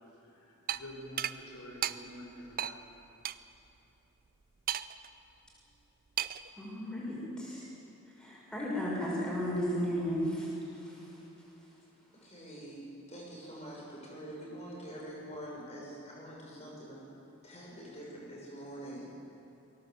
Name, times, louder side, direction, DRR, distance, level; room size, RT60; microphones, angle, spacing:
voice 1, 0.0-2.9, equal, 80° left, 0 dB, 3.6 m, -48 dB
sound 1, 0.7-0.8 1.2-1.4 1.8-2.0 2.6-2.7 3.2-3.4 4.7-5.1 6.2-6.5, right 11 dB, 40° right, 0.4 m, -33 dB
voice 2, 6.6-7.6 8.1-11.2 11.6-11.7, equal, 5° left, -6 dB, 5.9 m, -35 dB
voice 3, 12.2-12.8 13.1-17.0 17.4-19.1, right 1 dB, 30° left, -4 dB, 6.2 m, -45 dB
22.0 x 17.5 x 8.0 m, 2.9 s
head